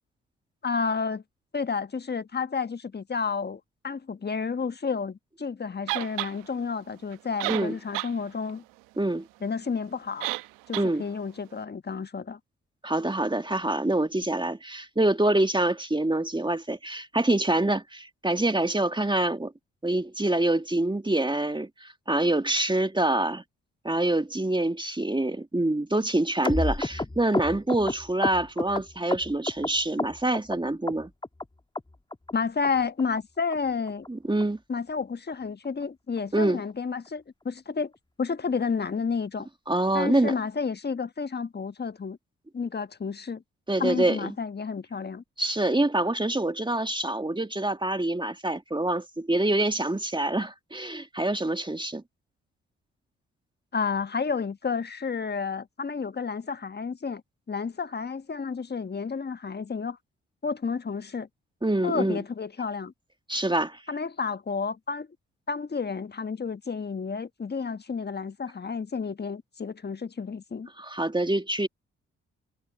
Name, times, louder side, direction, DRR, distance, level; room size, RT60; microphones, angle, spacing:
voice 1, 0.6-1.2 1.5-8.6 9.4-10.3 10.7-12.4 32.3-34.1 34.7-37.9 38.2-39.5 39.9-42.2 42.5-43.4 43.8-45.2 53.7-57.2 57.5-60.0 60.4-61.3 61.8-62.9 63.9-65.1 65.5-70.7, left 5 dB, 30° left, 1.4 m, -31 dB
sound 1, 5.9-6.3 7.1-7.2 7.4-8.1 8.5-8.6 10.2-10.5 10.7-10.9, right 21 dB, 85° right, 1.1 m, -30 dB
voice 2, 12.8-19.5 19.8-23.4 23.8-31.1 34.1-34.6 36.3-36.6 39.7-40.3 43.7-44.3 45.4-52.0 61.6-62.2 63.3-63.8 70.8-71.7, right 1 dB, 15° right, 2.1 m, -26 dB
sound 2, 26.4-29.7 30.0-30.6 30.9-31.5 31.8-31.9 32.1-32.3 32.6-32.7 33.0-33.2 33.5-33.6 33.9-34.1 34.4-34.5 34.8-35.0 35.3-35.4 35.6-35.8 36.2-36.3, left 2 dB, 15° left, 1.6 m, -30 dB
hypercardioid pair, 40°, 31 cm